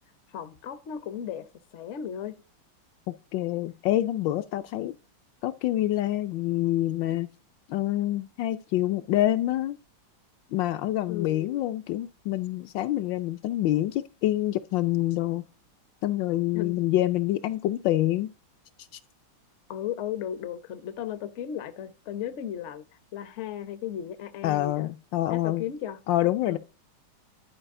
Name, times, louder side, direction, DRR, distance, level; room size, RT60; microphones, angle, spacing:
voice 1, 0.3-2.4 11.1-11.6 16.5-16.8 19.7-22.8 23.1-24.9 25.3-26.0 26.5-26.6, left 10 dB, 60° left, 0.7 m, -35 dB
voice 2, 3.3-4.9 5.4-7.3 7.7-9.8 10.5-15.4 16.0-18.3 18.9-19.0 24.4-25.6 26.1-26.6, left 14 dB, 75° left, 1.1 m, -26 dB
11.0 x 4.8 x 3.6 m
omnidirectional pair, 2.3 m